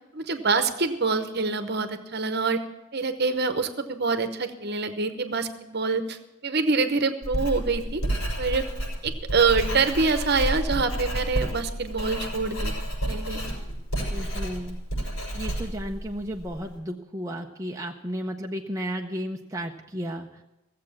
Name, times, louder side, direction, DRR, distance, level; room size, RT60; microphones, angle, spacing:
voice 1, 0.1-2.6 2.9-8.0 8.4-8.6 9.0-12.7 13.1-13.4, right 4 dB, 50° right, 9 dB, 1.0 m, -25 dB
Writing, 7.2-16.6, right 1 dB, 85° left, 6.3 m, -30 dB
voice 2, 14.1-14.8 15.3-20.3, equal, 15° right, 0 dB, 0.6 m, -33 dB
16.0 x 7.6 x 7.2 m, 0.98 s
head